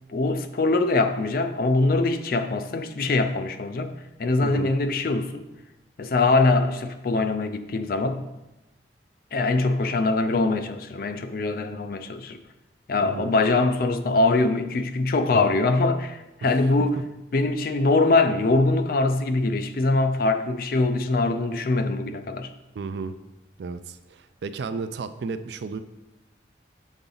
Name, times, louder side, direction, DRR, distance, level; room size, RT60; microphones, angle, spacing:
voice 1, 0.1-3.9 4.2-5.4 6.0-8.2 9.3-12.4 12.9-17.0 17.3-22.5, left 3 dB, 50° left, 9 dB, 0.4 m, -23 dB
voice 2, 4.4-4.7 13.0-13.3 16.4-16.9 22.8-23.1 23.6-25.8, right 4 dB, 70° right, 11 dB, 0.4 m, -33 dB
7.1 x 4.0 x 3.9 m, 0.97 s
head